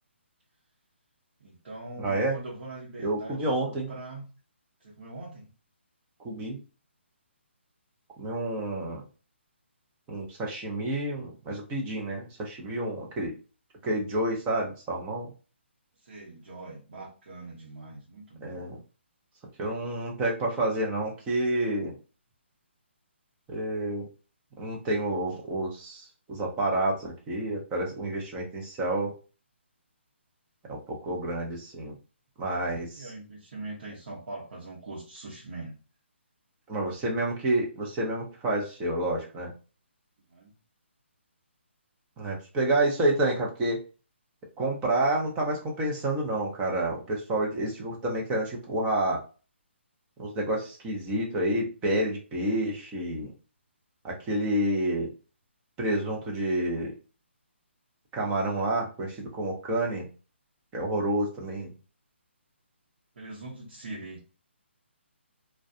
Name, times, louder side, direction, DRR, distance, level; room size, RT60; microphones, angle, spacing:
voice 1, 1.4-4.2 4.8-5.5 16.0-18.6 33.0-35.7 40.3-40.5 63.1-64.2, right 2 dB, 60° right, -6 dB, 0.9 m, -42 dB
voice 2, 2.0-2.3 3.0-3.9 6.2-6.6 8.2-9.0 10.1-13.3 13.8-15.3 18.4-18.8 19.6-21.9 23.5-24.1 24.6-29.1 30.7-32.0 32.4-33.1 36.7-39.5 42.2-43.8 44.6-49.2 50.2-53.3 54.0-55.1 55.8-56.9 58.1-60.1 60.7-61.7, right 1 dB, 15° right, -1 dB, 0.6 m, -29 dB
2.3 x 2.2 x 2.6 m, 0.35 s
figure-of-eight pair, 145°, 7 cm